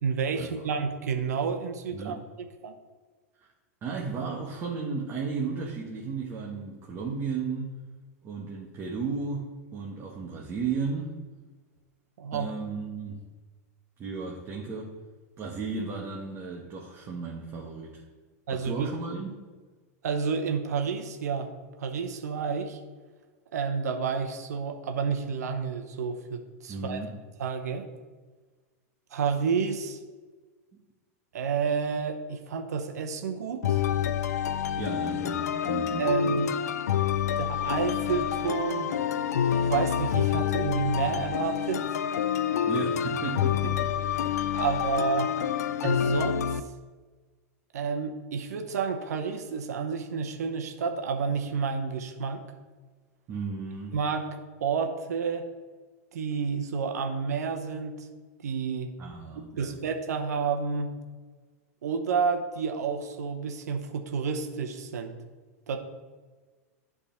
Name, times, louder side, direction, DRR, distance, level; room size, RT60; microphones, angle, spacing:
voice 1, 0.0-2.8 12.2-12.5 18.5-18.9 20.0-21.5 21.8-22.8 23.5-27.0 27.4-27.9 29.1-30.0 31.3-33.8 36.0-36.5 37.4-38.9 39.7-42.0 44.5-45.3 45.8-46.6 47.7-52.4 53.9-54.3 54.6-55.4 56.1-58.1 58.4-58.9 59.6-60.9 61.8-65.1 65.7-65.8, right 5 dB, 85° right, 5 dB, 0.9 m, -30 dB
voice 2, 1.9-2.2 3.4-3.5 3.8-7.8 8.2-11.1 12.3-13.2 14.0-14.9 15.4-18.0 18.5-19.3 26.7-27.1 34.8-36.1 42.7-44.0 53.3-54.0 59.0-59.8, right 5 dB, 30° right, -2 dB, 1.1 m, -34 dB
sound 1, 33.6-46.6, left 9 dB, 85° left, 0.4 m, -27 dB
8.1 x 3.6 x 5.7 m, 1.4 s
hypercardioid pair, 125°, 9 cm